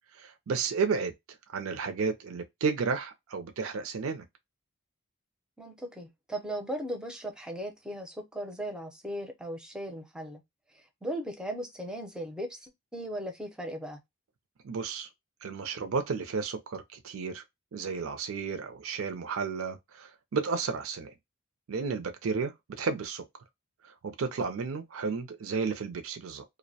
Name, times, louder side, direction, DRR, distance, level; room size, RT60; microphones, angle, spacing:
voice 1, 0.2-1.1 1.5-4.2 14.6-15.1 15.4-17.4 17.7-21.1 21.7-23.2 24.0-26.4, right 5 dB, 70° right, 0.4 m, -32 dB
voice 2, 5.6-10.4 10.7-14.0, right 1 dB, 5° right, 0.4 m, -37 dB
2.5 x 2.0 x 2.6 m
head